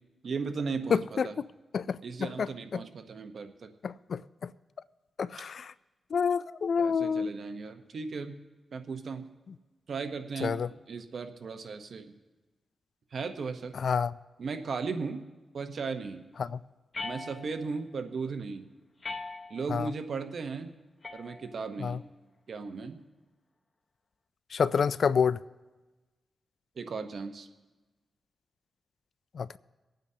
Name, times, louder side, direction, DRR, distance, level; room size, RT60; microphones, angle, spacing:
voice 1, 0.2-1.4 2.0-3.7 6.8-8.4 8.7-9.3 9.9-10.6 10.9-12.1 13.1-13.7 14.4-15.2 15.5-16.2 17.0-18.7 19.5-20.7 21.1-22.0 22.5-23.0 26.8-27.5, right 4 dB, 65° right, 0.9 m, -36 dB
voice 2, 0.9-1.3 1.7-2.5 2.7-2.8 3.8-4.5 5.2-5.7 6.1-7.3 10.4-10.7 13.8-14.1 16.4-16.6 19.7-19.9 21.8-22.0 24.5-25.4 29.3-29.6, left 6 dB, 70° left, 0.3 m, -28 dB
sound 1, 16.9-17.8 19.0-19.8 21.0-21.8, left 3 dB, 40° left, 1.1 m, -41 dB
24.5 x 9.0 x 2.8 m
cardioid pair, 70°, 0 cm